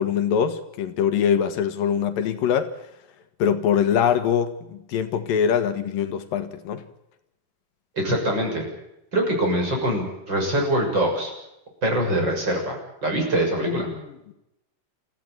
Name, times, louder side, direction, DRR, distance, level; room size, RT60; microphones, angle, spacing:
voice 1, 0.0-2.7 3.4-6.8 13.6-14.1, left 8 dB, 85° left, 3.2 m, -23 dB
voice 2, 8.0-8.7 9.1-11.3 11.8-13.9, right 1 dB, 30° right, 7.3 m, -23 dB
27.5 x 15.5 x 9.1 m
omnidirectional pair, 3.9 m